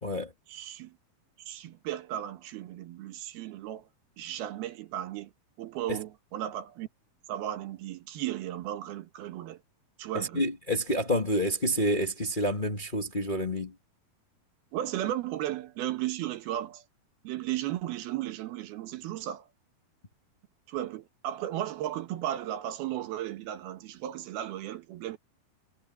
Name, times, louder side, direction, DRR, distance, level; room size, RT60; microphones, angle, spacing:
voice 1, 0.5-1.0 1.5-3.9 4.2-5.3 5.6-6.9 7.3-9.6 10.0-10.5 14.7-16.8 17.2-19.5 20.7-25.2, right 12 dB, 75° right, 3.1 m, -35 dB
voice 2, 10.1-13.7, equal, 35° left, 0.7 m, -28 dB
omnidirectional pair, 4.6 m